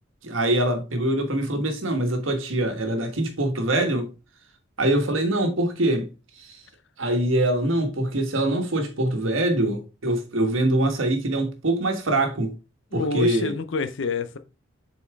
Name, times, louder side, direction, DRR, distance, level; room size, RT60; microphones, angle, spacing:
voice 1, 0.2-4.1 4.8-6.1 6.4-6.6 7.0-12.5 12.9-13.5, right 1 dB, 85° right, 1.4 m, -24 dB
voice 2, 12.9-14.4, left 4 dB, 65° left, 0.6 m, -27 dB
7.2 x 4.2 x 3.4 m
head